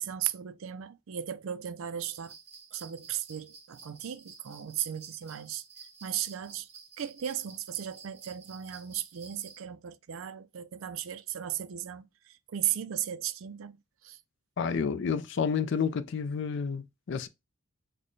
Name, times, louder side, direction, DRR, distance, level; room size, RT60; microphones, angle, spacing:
voice 1, 0.0-2.3 2.7-5.6 6.0-6.7 7.0-13.8 14.0-14.2, right 10 dB, 65° right, 0.4 m, -36 dB
sound 1, 2.0-9.6, right 5 dB, 30° right, 1.0 m, -52 dB
voice 2, 14.6-17.3, left 6 dB, 55° left, 0.4 m, -30 dB
4.2 x 2.2 x 3.0 m
head